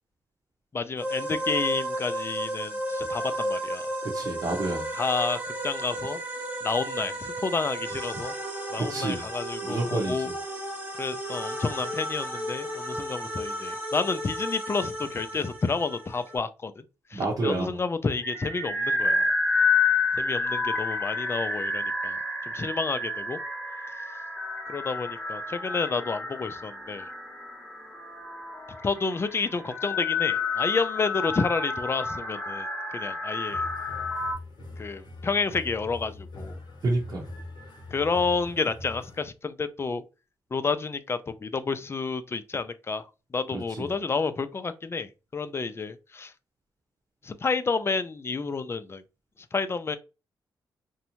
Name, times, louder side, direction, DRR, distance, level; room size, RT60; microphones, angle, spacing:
voice 1, 0.7-3.8 5.0-6.2 6.6-8.3 8.7-10.3 11.0-16.8 17.1-19.3 20.1-23.4 24.7-27.1 28.8-33.6 34.8-36.6 37.9-40.0 40.5-46.3 47.2-49.0 49.5-50.0, left 4 dB, 30° left, 0.4 m, -30 dB
sound 1, 1.0-16.4, right 1 dB, 20° right, 0.8 m, -33 dB
voice 2, 4.0-4.9 8.8-9.2 9.6-10.3 17.1-17.8 36.8-37.3 43.5-43.9, right 2 dB, 45° right, 0.8 m, -29 dB
sound 2, 18.2-34.3, left 3 dB, 10° left, 0.9 m, -29 dB
sound 3, 33.5-39.3, left 2 dB, 60° left, 0.8 m, -42 dB
2.6 x 2.1 x 2.9 m
supercardioid pair, 60°, 8 cm